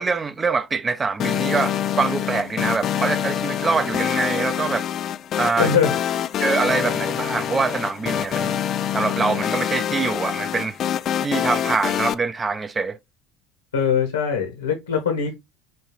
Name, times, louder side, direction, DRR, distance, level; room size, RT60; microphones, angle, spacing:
voice 1, 0.0-4.9 5.4-5.7 6.4-8.6 8.9-10.8 11.2-13.0, right 4 dB, 25° right, 0.5 m, -24 dB
sound 1, 1.2-12.1, left 9 dB, 45° left, 0.3 m, -25 dB
voice 2, 5.6-6.0 13.7-15.3, left 7 dB, 90° left, 0.9 m, -21 dB
5.3 x 2.3 x 3.0 m
hypercardioid pair, 70°, 0 cm